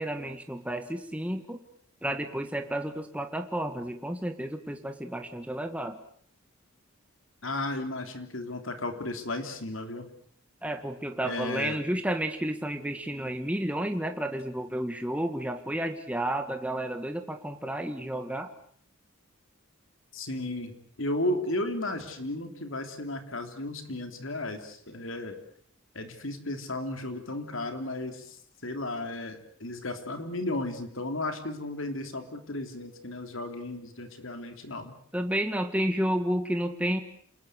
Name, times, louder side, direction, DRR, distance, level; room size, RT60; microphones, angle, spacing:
voice 1, 0.0-1.6 2.0-6.0 10.6-18.5 35.1-37.0, right 1 dB, 5° right, 6 dB, 1.7 m, -31 dB
voice 2, 7.4-10.1 11.2-11.8 20.1-25.4 25.9-34.9, left 2 dB, 65° left, 7 dB, 3.5 m, -34 dB
28.5 x 20.5 x 8.2 m, 0.62 s
head